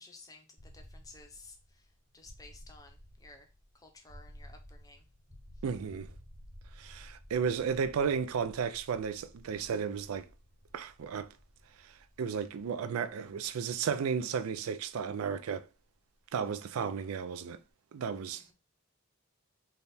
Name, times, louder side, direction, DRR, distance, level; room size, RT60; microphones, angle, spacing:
voice 1, 0.0-1.9 2.1-3.5 3.7-5.1 18.3-18.5, left 3 dB, 15° left, 0.6 m, -55 dB
sound 1, 0.6-16.4, equal, 30° right, 1.4 m, -55 dB
voice 2, 5.6-6.1 6.8-10.3 10.7-11.3 11.8-15.7 16.3-17.6 17.9-18.5, right 6 dB, 85° right, 0.4 m, -34 dB
3.4 x 2.3 x 4.1 m
head